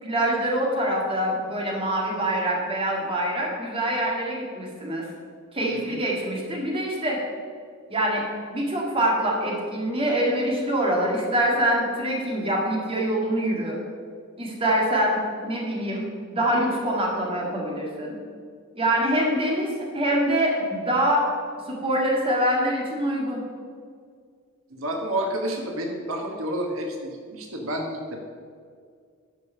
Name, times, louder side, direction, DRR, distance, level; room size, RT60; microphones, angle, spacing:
voice 1, 0.0-5.0 5.5-7.2 7.9-8.2 8.5-13.8 14.4-18.2 18.8-21.2 21.7-23.4, right 1 dB, 25° right, -2 dB, 1.9 m, -25 dB
voice 2, 5.7-6.0 24.7-28.2, right 1 dB, 85° right, 2 dB, 1.2 m, -30 dB
11.5 x 5.3 x 5.6 m, 2.1 s
head